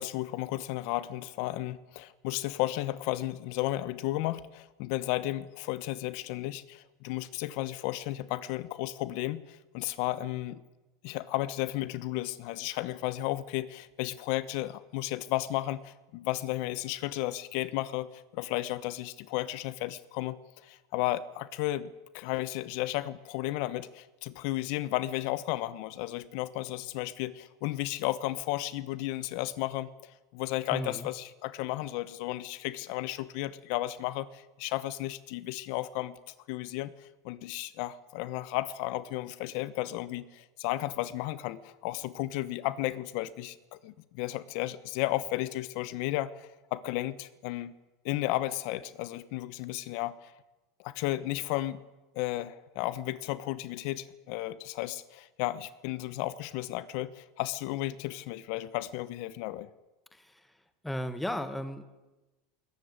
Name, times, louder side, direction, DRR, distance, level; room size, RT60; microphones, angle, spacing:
voice 1, 0.0-10.6 11.0-47.7 48.0-50.3 50.8-51.8 52.1-59.7, left 16 dB, 55° left, 16 dB, 1.0 m, -34 dB
voice 2, 30.7-31.1 60.1-60.4 60.8-61.8, equal, 5° left, 11 dB, 1.7 m, -35 dB
21.5 x 19.0 x 9.6 m, 1.1 s
supercardioid pair, 155°, 2 cm